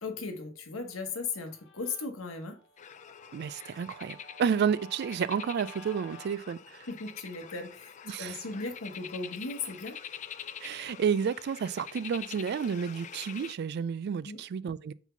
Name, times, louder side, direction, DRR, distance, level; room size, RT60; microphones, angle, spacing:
voice 1, 0.0-2.6 6.9-10.0 14.2-14.4, left 4 dB, 85° left, 1.2 m, -37 dB
Guitar, 0.9-6.4, equal, 60° left, 1.1 m, -52 dB
sound 1, 2.8-13.5, left 8 dB, 35° left, 0.3 m, -46 dB
voice 2, 3.3-6.9 8.1-8.4 10.6-14.9, right 7 dB, 55° right, 0.3 m, -31 dB
4.5 x 4.1 x 5.6 m
head